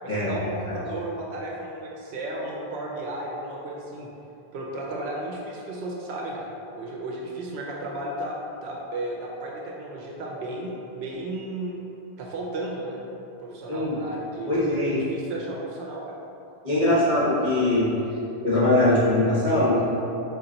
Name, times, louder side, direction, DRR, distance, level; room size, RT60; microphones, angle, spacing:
voice 1, 0.0-4.1 4.5-6.5 6.7-11.8 12.2-13.0 13.4-16.2 16.8-17.0, right 1 dB, 90° right, -2 dB, 0.8 m, -34 dB
voice 2, 14.5-15.0 16.6-17.9 18.4-19.9, left 1 dB, 40° right, -9 dB, 1.4 m, -21 dB
5.1 x 2.4 x 3.8 m, 2.9 s
omnidirectional pair, 1.1 m